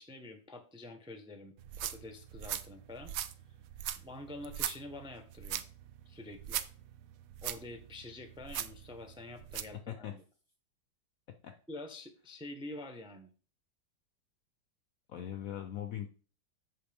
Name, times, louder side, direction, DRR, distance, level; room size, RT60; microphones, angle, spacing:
voice 1, 0.0-3.1 4.0-5.6 6.1-6.6 7.4-10.2 11.7-13.3, left 2 dB, 5° right, 7 dB, 0.5 m, -47 dB
sound 1, 1.6-9.8, right 11 dB, 70° right, 0.8 m, -41 dB
voice 2, 9.9-10.2 11.4-11.6 15.1-16.1, left 10 dB, 70° left, 7 dB, 0.8 m, -40 dB
8.1 x 5.6 x 3.5 m, 0.38 s
omnidirectional pair, 2.0 m